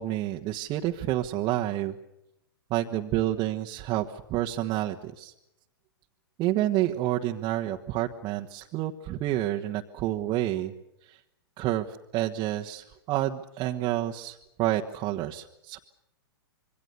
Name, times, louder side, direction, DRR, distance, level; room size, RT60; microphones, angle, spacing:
voice 1, 0.0-1.9 2.7-5.3 6.4-10.7 11.0-11.2 11.6-15.8, right 14 dB, 35° right, 1 dB, 1.3 m, -29 dB
27.0 x 23.0 x 6.9 m, 0.87 s
hypercardioid pair, 115°, 13 cm